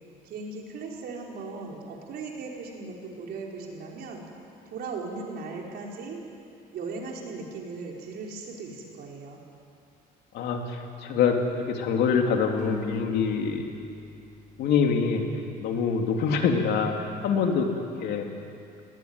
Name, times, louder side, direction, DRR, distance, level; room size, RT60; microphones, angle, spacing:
voice 1, 0.2-4.2 4.6-6.2 6.7-9.4, right 4 dB, 70° right, -1 dB, 4.7 m, -38 dB
voice 2, 10.3-13.7 14.6-15.2 15.6-18.3, left 5 dB, 75° left, 3 dB, 2.8 m, -25 dB
sound 1, 12.6-16.2, left 4 dB, 50° left, 6.2 m, -42 dB
19.0 x 19.0 x 9.6 m, 2.5 s
cardioid pair, 110°, 17 cm